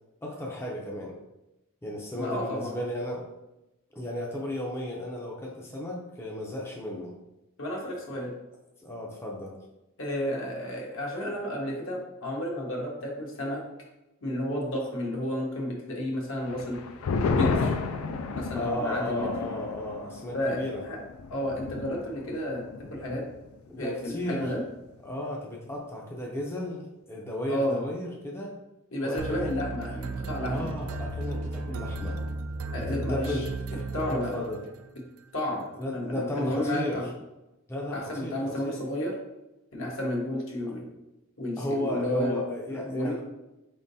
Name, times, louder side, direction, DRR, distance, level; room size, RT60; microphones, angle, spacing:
voice 1, 0.2-1.2 1.8-3.2 3.9-7.1 8.1-8.2 8.8-9.6 18.5-20.8 23.7-24.5 25.0-28.5 29.0-29.5 29.9-30.0 30.5-32.2 32.8-34.6 35.8-37.0 37.7-38.8 41.6-43.2, left 1 dB, 10° left, -2 dB, 0.5 m, -34 dB
voice 2, 2.1-2.8 7.6-8.3 10.0-13.6 14.2-16.8 17.3-17.7 18.3-19.3 20.3-21.0 21.3-22.6 22.9-23.2 23.8-24.6 27.5-27.8 28.9-30.7 32.7-33.4 33.9-34.3 35.3-37.1 37.9-39.1 39.7-40.9 41.4-42.4 42.7-43.1, left 1 dB, 65° left, -2 dB, 1.1 m, -31 dB
sound 1, 16.5-23.4 23.7-23.8 24.2-24.6, left 4 dB, 85° left, 0.4 m, -32 dB
sound 2, 29.2-34.9, right 2 dB, 75° right, 0.3 m, -34 dB
4.5 x 3.6 x 2.7 m, 0.97 s
head